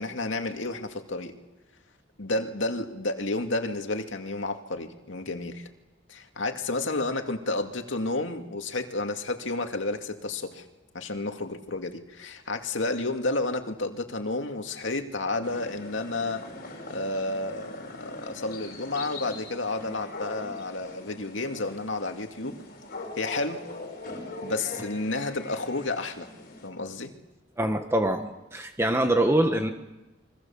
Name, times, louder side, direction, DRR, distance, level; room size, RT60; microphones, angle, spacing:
voice 1, 0.0-1.3 2.2-5.7 6.1-10.7 10.9-16.4 16.9-22.6 23.2-23.6 24.4-26.3 26.6-27.1, left 2 dB, 85° left, 5 dB, 2.4 m, -31 dB
sound 1, 15.4-26.7, left 2 dB, 55° left, 5.7 m, -42 dB
voice 2, 27.6-29.7, right 1 dB, 15° right, 5 dB, 1.5 m, -24 dB
29.0 x 24.0 x 7.3 m, 1.0 s
head